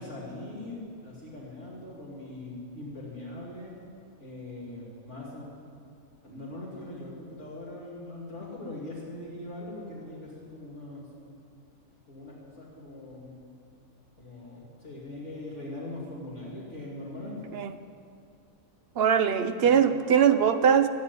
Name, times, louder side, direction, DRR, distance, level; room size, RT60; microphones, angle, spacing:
voice 1, 0.0-3.7 4.2-5.5 6.2-11.1 12.1-13.4 14.2-17.3 19.6-20.0, left 2 dB, 55° left, -6 dB, 3.1 m, -41 dB
voice 2, 19.0-20.9, right 7 dB, 55° right, 10 dB, 0.8 m, -21 dB
14.0 x 8.2 x 9.5 m, 2.4 s
omnidirectional pair, 1.4 m